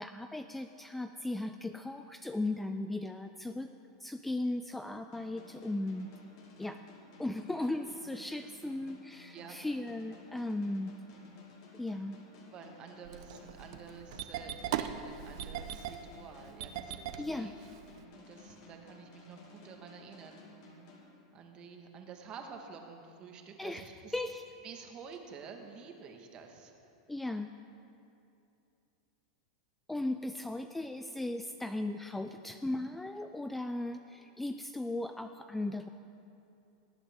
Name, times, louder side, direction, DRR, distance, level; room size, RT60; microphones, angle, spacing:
voice 1, 0.0-3.7 4.0-6.1 6.6-6.8 7.2-10.9 11.7-12.2 17.2-17.5 23.6-24.4 27.1-27.5 29.9-35.9, left 2 dB, 5° left, 8 dB, 0.3 m, -37 dB
sound 1, 5.1-21.7, left 2 dB, 65° left, 2.2 m, -55 dB
voice 2, 12.5-17.7 18.2-20.4 21.3-24.2 24.6-26.7, right 6 dB, 35° right, 4 dB, 1.3 m, -50 dB
Engine starting, 13.1-18.0, right 10 dB, 65° right, 0.6 m, -39 dB
18.5 x 8.5 x 3.6 m, 2.7 s
supercardioid pair, 130°, 3 cm